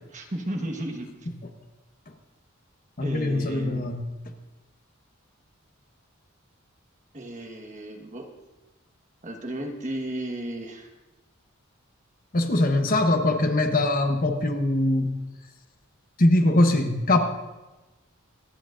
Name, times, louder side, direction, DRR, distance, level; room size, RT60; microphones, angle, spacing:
voice 1, 0.1-1.3 3.0-3.9 7.1-8.3 9.2-10.9 12.9-13.1, right 1 dB, 35° right, 3 dB, 1.3 m, -34 dB
voice 2, 3.0-4.0 12.3-15.2 16.2-17.2, left 2 dB, 45° left, 5 dB, 1.0 m, -22 dB
25.5 x 9.2 x 2.5 m, 1.1 s
head